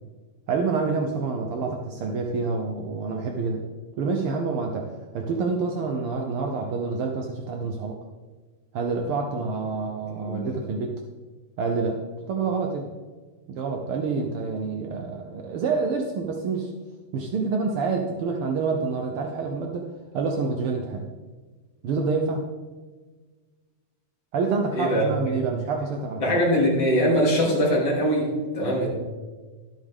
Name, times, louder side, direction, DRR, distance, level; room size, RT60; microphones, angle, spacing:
voice 1, 0.5-3.6 4.0-4.9 5.1-8.0 8.7-11.0 11.6-12.0 12.3-12.9 13.5-16.7 17.1-19.9 20.1-21.1 21.8-22.4 24.3-26.4, right 4 dB, 80° right, 3 dB, 1.2 m, -27 dB
voice 2, 10.2-10.5 24.7-25.0 25.3-25.4 26.2-28.9, equal, 10° left, -5 dB, 2.6 m, -22 dB
13.0 x 8.3 x 3.6 m, 1.3 s
omnidirectional pair, 3.5 m